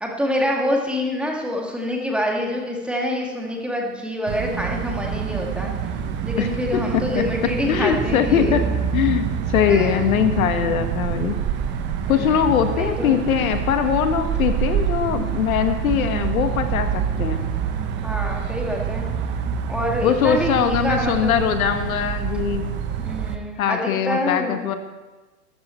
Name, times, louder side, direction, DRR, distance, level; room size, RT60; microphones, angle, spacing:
voice 1, 0.0-5.7 6.2-8.6 9.7-10.0 12.0-13.2 18.0-19.0 19.7-21.4 23.0-24.5, left 1 dB, ahead, 0 dB, 1.8 m, -26 dB
Park Szczubelka Ulica Daleko, 4.3-23.4, right 8 dB, 25° right, 0.8 m, -26 dB
voice 2, 6.4-7.2 7.7-8.6 8.9-11.4 12.1-17.5 20.0-22.7 23.6-24.8, left 8 dB, 60° left, 8 dB, 1.6 m, -21 dB
13.5 x 10.5 x 4.4 m, 1.2 s
hypercardioid pair, 125°, 47 cm